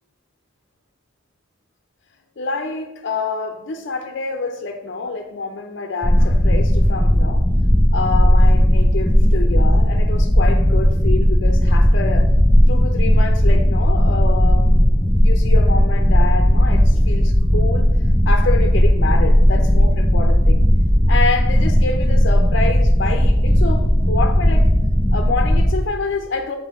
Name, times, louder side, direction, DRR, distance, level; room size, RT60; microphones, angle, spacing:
voice 1, 2.4-7.4 7.9-12.3 12.7-14.8 15.2-17.9 18.3-20.6 21.1-24.7 25.1-26.6, left 3 dB, 65° left, 5 dB, 0.6 m, -27 dB
sound 1, 6.0-25.7, equal, 15° right, 2.3 m, -15 dB
8.1 x 5.7 x 3.6 m, 0.94 s
head